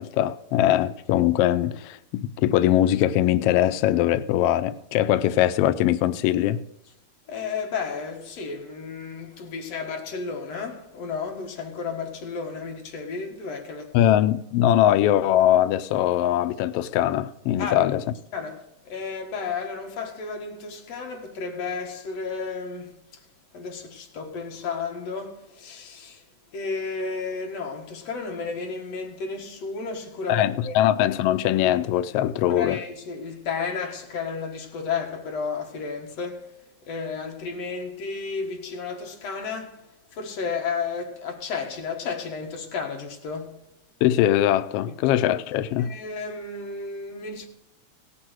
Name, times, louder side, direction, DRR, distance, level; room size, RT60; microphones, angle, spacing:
voice 1, 0.0-6.6 13.9-18.0 30.3-32.8 44.0-45.9, left 12 dB, 85° left, 1.3 m, -21 dB
voice 2, 7.3-14.0 17.6-18.0 18.3-23.2 23.5-26.2 26.5-30.8 32.5-43.6 44.9-45.0 45.8-47.5, left 5 dB, 65° left, 2.7 m, -33 dB
17.5 x 6.2 x 6.3 m
omnidirectional pair, 3.3 m